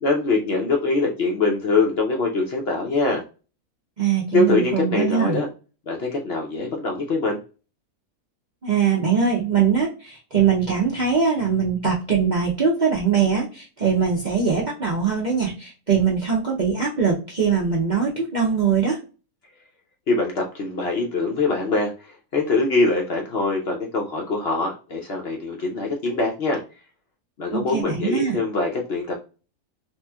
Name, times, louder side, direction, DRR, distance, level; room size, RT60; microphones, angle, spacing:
voice 1, 0.0-3.2 4.3-5.5 5.9-7.4 20.1-21.9 22.3-26.6 27.4-29.1, left 3 dB, 60° left, 1 dB, 0.7 m, -23 dB
voice 2, 4.0-5.4 8.6-19.0 27.5-28.4, right 6 dB, 50° right, -4 dB, 0.5 m, -22 dB
3.1 x 3.0 x 2.2 m, 0.34 s
omnidirectional pair, 1.5 m